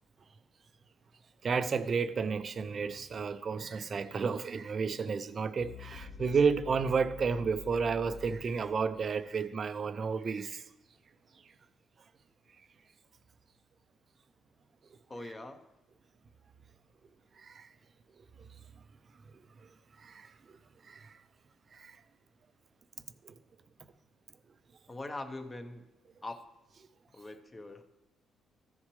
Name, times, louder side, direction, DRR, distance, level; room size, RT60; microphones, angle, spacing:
voice 1, 1.4-10.6 17.4-17.7 19.6-19.7 20.0-20.3 20.8-21.2 21.7-22.0 23.2-23.3, right 5 dB, 45° right, 0.5 m, -32 dB
sound 1, 5.6-9.7, left 4 dB, 55° left, 0.8 m, -48 dB
voice 2, 15.1-15.6 24.9-25.9 26.2-26.4 27.1-27.8, left 2 dB, 25° left, 0.9 m, -42 dB
14.0 x 7.2 x 3.2 m
cardioid pair, 90°, 0 cm